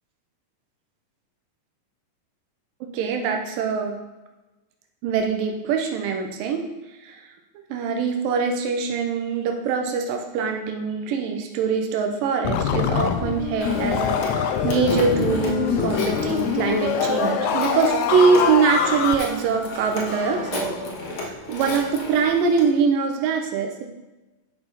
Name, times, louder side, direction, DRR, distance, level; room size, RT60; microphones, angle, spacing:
voice 1, 2.9-4.0 5.0-6.7 7.0-7.2 7.7-20.8 21.2-23.9, right 5 dB, 85° right, 3 dB, 2.5 m, -23 dB
sound 1, 12.4-19.2, left 8 dB, 90° left, 1.6 m, -24 dB
Telephone, 13.6-22.7, left 2 dB, 60° left, 1.7 m, -31 dB
8.9 x 5.7 x 4.0 m, 1.1 s
omnidirectional pair, 3.9 m